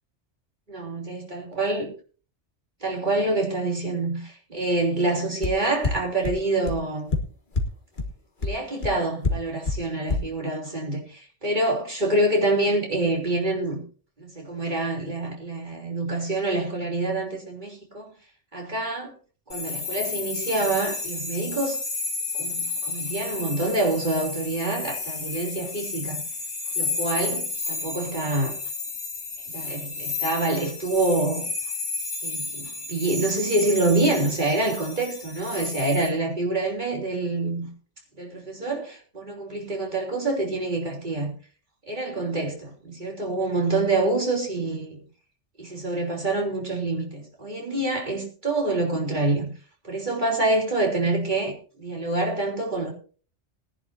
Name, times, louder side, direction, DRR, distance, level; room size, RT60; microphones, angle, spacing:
voice 1, 0.7-1.9 2.8-7.1 8.4-13.8 14.2-18.1 18.5-19.1 19.5-21.8 22.4-26.2 26.8-28.6 29.5-31.5 32.2-37.7 38.2-41.3 41.9-45.0 45.6-49.5 49.8-52.9, right 2 dB, 40° right, 3.4 m, -26 dB
sound 1, 5.4-5.5 5.8-5.9 6.2-6.3 6.7-6.8 7.1-7.2 7.5-7.6 8.0-8.1 8.4-8.5 8.8-8.9 9.2-9.3 9.7-9.8 10.1-10.2, left 3 dB, 45° left, 1.7 m, -23 dB
sound 2, 19.5-36.1, left 3 dB, 80° left, 2.4 m, -32 dB
20.0 x 11.0 x 2.7 m
omnidirectional pair, 1.2 m